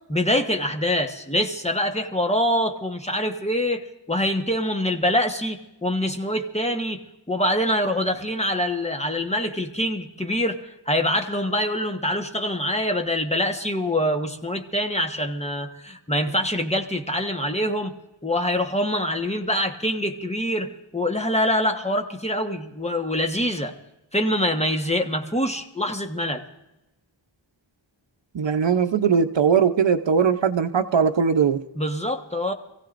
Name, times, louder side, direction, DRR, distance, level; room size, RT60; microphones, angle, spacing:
voice 1, 0.1-7.0 7.3-10.6 10.9-17.9 18.2-23.7 24.1-26.4 31.8-32.5, left 1 dB, 15° left, 4 dB, 1.3 m, -25 dB
voice 2, 28.3-31.6, right 6 dB, 65° right, 9 dB, 0.8 m, -20 dB
26.5 x 16.0 x 2.6 m, 0.93 s
wide cardioid pair, 80°, 48 cm